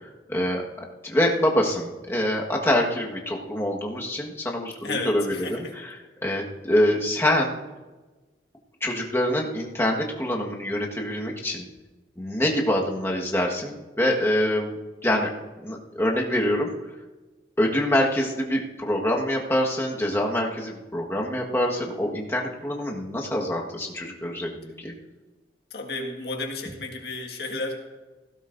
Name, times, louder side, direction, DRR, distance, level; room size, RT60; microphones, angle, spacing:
voice 1, 0.3-5.6 6.2-7.6 8.8-11.6 12.2-14.8 15.0-15.3 15.6-16.7 17.6-24.9, left 1 dB, 15° left, -1 dB, 1.5 m, -25 dB
voice 2, 4.8-5.8 25.7-27.8, left 2 dB, 60° left, 1 dB, 1.8 m, -32 dB
16.5 x 16.0 x 2.7 m, 1.2 s
head